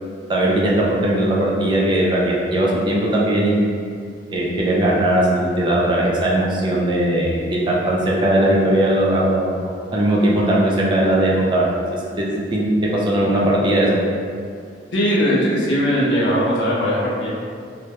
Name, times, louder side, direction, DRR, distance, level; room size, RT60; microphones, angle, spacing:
voice 1, 0.3-3.6 4.3-12.6 12.9-14.0, right 1 dB, 25° right, -4 dB, 0.3 m, -19 dB
voice 2, 14.9-17.3, equal, 80° left, -6 dB, 0.6 m, -19 dB
2.2 x 2.1 x 2.8 m, 2.3 s
head